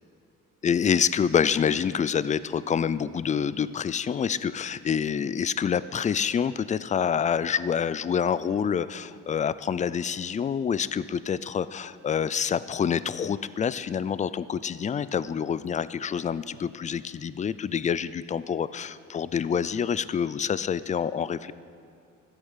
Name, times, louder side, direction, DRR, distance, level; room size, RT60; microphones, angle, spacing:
voice 1, 0.6-21.5, left 7 dB, 25° left, 16 dB, 0.3 m, -27 dB
13.0 x 8.0 x 5.7 m, 2.5 s
cardioid pair, 90°, 30 cm